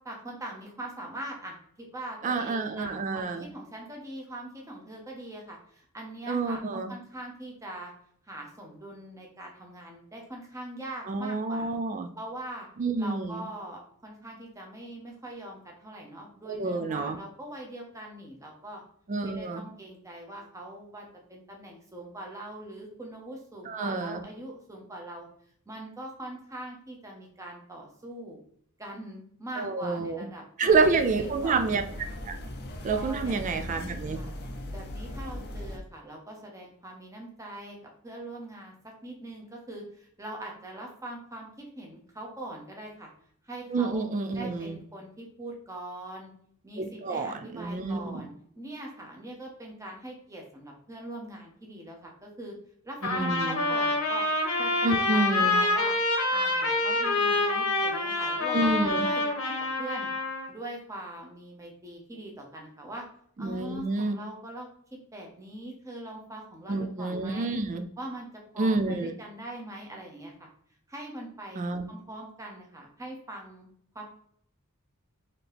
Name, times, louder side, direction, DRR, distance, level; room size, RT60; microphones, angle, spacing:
voice 1, 0.0-7.9 8.3-11.7 12.2-12.7 13.0-18.8 19.2-25.3 25.7-28.4 28.8-31.7 32.9-33.5 34.1-34.4 34.7-37.8 38.0-43.1 43.4-44.0 44.3-46.3 46.6-48.3 48.6-52.6 52.8-54.3 54.6-55.9 56.3-59.5 59.8-60.1 60.5-63.0 63.4-67.6 68.0-68.3 68.5-70.5 70.9-71.6 71.9-73.7 73.9-74.1, right 1 dB, 15° right, 0 dB, 0.9 m, -42 dB
voice 2, 2.2-3.5 6.3-6.9 11.1-12.1 12.8-13.4 16.5-17.2 19.1-19.6 23.7-24.2 29.6-30.3 30.6-31.8 32.2-32.3 32.8-34.2 43.7-44.8 46.8-48.3 53.1-53.6 54.8-55.6 58.5-59.1 63.4-64.2 66.7-67.8 68.6-69.2 71.6-71.8, right 3 dB, 35° right, 6 dB, 0.3 m, -28 dB
sound 1, 30.7-35.8, left 1 dB, 50° left, 0.5 m, -39 dB
Trumpet, 53.0-60.5, left 2 dB, 90° left, 1.1 m, -27 dB
4.0 x 2.9 x 3.3 m, 0.62 s
head